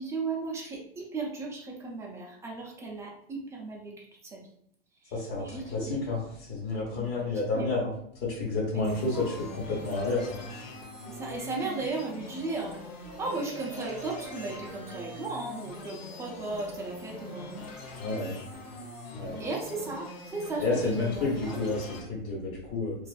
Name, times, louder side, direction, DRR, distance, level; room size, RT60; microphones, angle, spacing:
voice 1, 0.0-4.5 4.9-6.0 7.0-7.1 7.5-7.7 8.7-8.9 9.1-9.3 11.1-17.6 19.4-21.7, right 3 dB, 10° right, -1 dB, 0.3 m, -36 dB
voice 2, 5.1-7.9 8.2-9.3 9.7-10.4 18.0-18.4 19.1-19.4 20.6-23.0, left 3 dB, 50° left, -6 dB, 1.2 m, -30 dB
sound 1, 8.9-22.0, left 2 dB, 75° left, 0.8 m, -43 dB
Marimba xylophone, 13.0-15.8, right 6 dB, 70° right, 0.6 m, -46 dB
2.5 x 2.4 x 2.3 m, 0.68 s
supercardioid pair, 130°, 30 cm